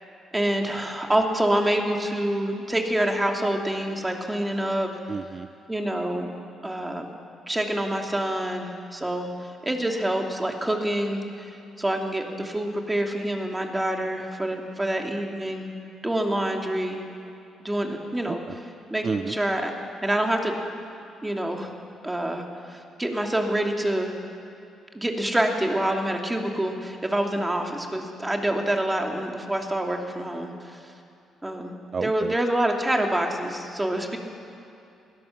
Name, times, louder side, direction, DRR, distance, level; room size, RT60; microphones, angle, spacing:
voice 1, 0.3-4.9 5.7-6.3 6.6-7.1 7.5-9.3 9.6-11.5 11.8-15.6 16.0-17.0 17.6-18.4 18.9-19.7 20.0-20.6 21.2-21.7 22.0-24.1 24.9-30.9 31.4-31.7 32.0-34.2, right 1 dB, 10° right, 2 dB, 2.7 m, -26 dB
voice 2, 5.1-5.5 18.3-18.4 19.0-19.3 31.9-32.3, right 5 dB, 40° right, 12 dB, 0.5 m, -30 dB
21.0 x 17.0 x 7.2 m, 2.7 s
cardioid pair, 90°, 0 cm